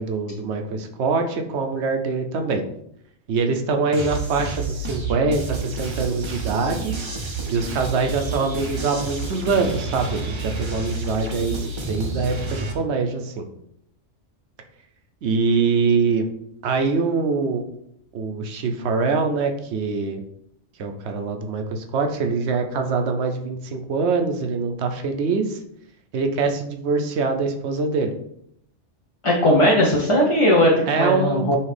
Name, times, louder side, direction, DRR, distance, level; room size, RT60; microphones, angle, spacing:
voice 1, 0.0-2.6 3.3-6.9 7.5-13.5 15.2-16.3 16.6-17.6 18.1-20.2 20.8-25.6 26.1-28.1 30.9-31.6, right 4 dB, 70° right, 5 dB, 0.9 m, -24 dB
sound 1, 3.9-12.7, right 3 dB, 40° right, 0.4 m, -29 dB
voice 2, 29.2-31.6, left 1 dB, 35° left, -3 dB, 0.5 m, -18 dB
5.7 x 2.8 x 3.3 m, 0.73 s
omnidirectional pair, 1.2 m